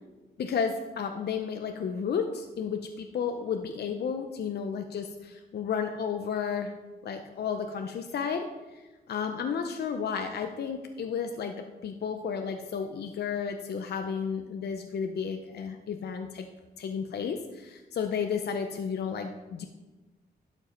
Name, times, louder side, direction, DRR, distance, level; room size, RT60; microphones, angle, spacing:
voice 1, 0.4-6.7 7.0-16.4 16.8-19.7, left 6 dB, 65° left, 6 dB, 0.6 m, -32 dB
11.5 x 5.3 x 5.2 m, 1.2 s
wide cardioid pair, 110°, 18 cm